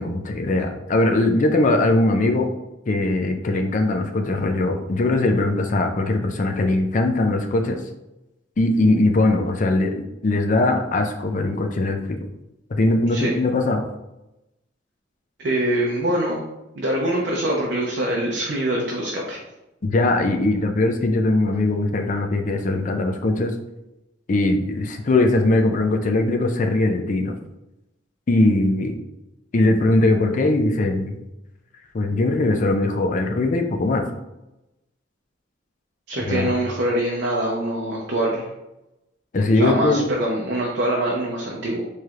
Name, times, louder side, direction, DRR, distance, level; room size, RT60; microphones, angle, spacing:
voice 1, 0.0-2.5 2.9-7.8 8.6-12.2 12.7-13.8 19.8-23.5 24.3-27.3 28.3-29.0 29.5-31.2 31.9-34.0 36.3-36.5 39.3-40.1, left 2 dB, 40° left, 4 dB, 0.4 m, -20 dB
voice 2, 15.4-16.4 16.7-19.4 36.1-38.5 39.6-41.8, right 1 dB, 55° right, -3 dB, 0.6 m, -24 dB
4.5 x 3.2 x 2.4 m, 0.93 s
head